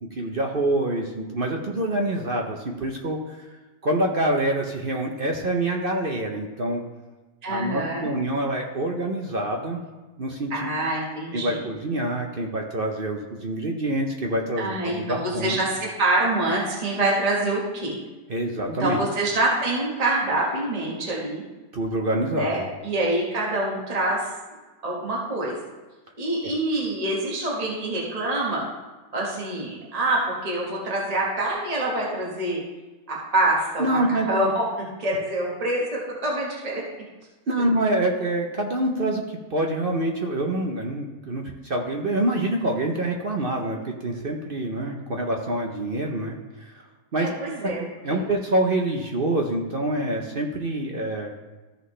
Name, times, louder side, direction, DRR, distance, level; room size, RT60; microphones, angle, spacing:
voice 1, 0.0-3.5 3.8-6.8 7.5-9.8 10.2-10.7 11.3-15.6 18.3-19.0 21.7-22.6 26.4-26.5 33.8-34.3 37.5-46.8 47.1-47.3 47.6-47.7 48.0-51.3, right 1 dB, 45° right, 1 dB, 0.7 m, -26 dB
voice 2, 7.4-8.1 10.5-11.7 14.6-18.0 18.6-21.4 22.3-24.3 24.8-25.5 26.2-28.6 29.1-32.6 33.1-34.0 34.2-36.8 47.2-47.8 48.1-48.2, right 2 dB, 25° right, -4 dB, 1.5 m, -26 dB
14.0 x 5.6 x 3.2 m, 1.2 s
omnidirectional pair, 1.8 m